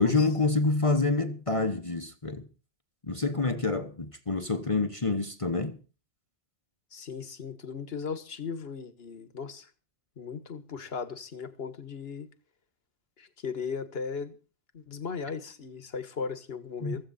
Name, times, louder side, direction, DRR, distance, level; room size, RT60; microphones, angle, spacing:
voice 1, 0.0-2.5 3.0-5.8 16.8-17.1, left 3 dB, 30° left, 1.2 m, -27 dB
voice 2, 6.9-9.7 10.2-12.3 13.2-14.4 14.7-17.1, left 5 dB, 65° left, 1.7 m, -37 dB
16.0 x 14.5 x 4.2 m
omnidirectional pair, 1.1 m